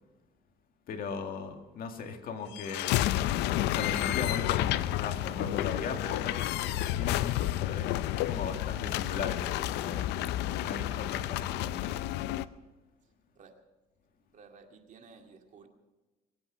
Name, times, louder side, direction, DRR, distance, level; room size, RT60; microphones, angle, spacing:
voice 1, 0.9-3.0 3.7-12.1, left 5 dB, 60° left, 5 dB, 1.9 m, -38 dB
sound 1, 2.5-12.5, left 14 dB, 85° left, 0.5 m, -30 dB
voice 2, 13.0-13.5 14.3-15.7, right 5 dB, 50° right, 4 dB, 2.1 m, -55 dB
22.5 x 8.7 x 6.3 m, 1.2 s
cardioid pair, 110°, 17 cm